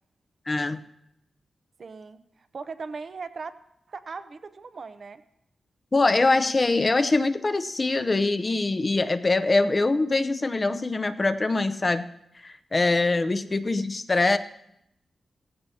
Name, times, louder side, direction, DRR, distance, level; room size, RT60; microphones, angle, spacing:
voice 1, 0.5-0.8 5.9-12.1 12.4-14.4, left 3 dB, 30° left, 11 dB, 0.7 m, -23 dB
voice 2, 1.8-3.5 3.9-5.2 13.4-13.6, right 4 dB, 55° right, 11 dB, 0.8 m, -39 dB
16.5 x 15.0 x 2.8 m, 0.78 s
wide cardioid pair, 95°, 0 cm